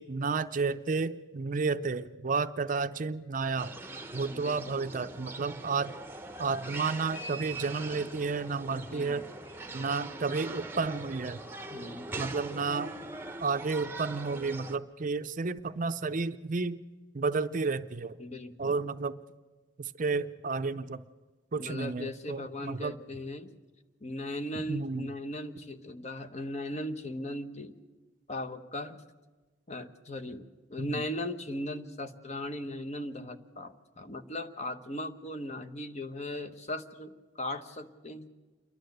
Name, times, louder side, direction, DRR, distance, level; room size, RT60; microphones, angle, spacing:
voice 1, 0.0-3.7 4.1-6.0 6.4-9.2 9.7-11.4 12.2-12.9 13.4-16.8 17.1-18.2 18.6-19.2 19.8-21.0 21.5-22.9 24.5-25.1 30.8-31.0, right 4 dB, 45° right, 12 dB, 0.6 m, -31 dB
sound 1, 3.6-14.8, right 2 dB, 10° right, 0.9 m, -42 dB
voice 2, 4.3-4.8 8.7-9.2 11.7-12.3 18.2-18.8 21.5-23.5 24.0-27.7 28.3-29.0 29.7-38.3, left 1 dB, 35° left, 9 dB, 1.1 m, -38 dB
28.5 x 11.5 x 7.9 m, 1.3 s
head